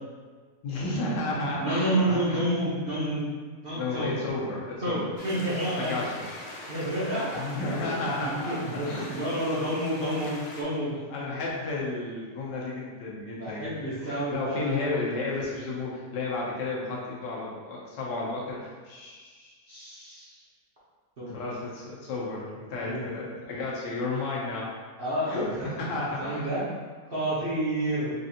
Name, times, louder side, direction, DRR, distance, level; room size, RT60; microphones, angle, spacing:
voice 1, 0.6-2.4 3.7-5.0 5.8-6.2 7.4-9.1 11.1-19.5 21.3-24.7 25.2-26.4, left 3 dB, 85° left, -4 dB, 1.5 m, -32 dB
voice 2, 1.3-3.3 3.6-4.1 4.8-5.9 6.7-11.0 13.3-15.0 19.7-20.4 21.2-21.4 22.8-23.1 25.0-25.8 26.2-26.7 27.1-28.1, right 1 dB, 45° right, -10 dB, 0.8 m, -30 dB
sound 1, 5.2-10.6, left 1 dB, 65° left, 0.8 m, -42 dB
4.5 x 2.5 x 2.6 m, 1.5 s
omnidirectional pair, 1.8 m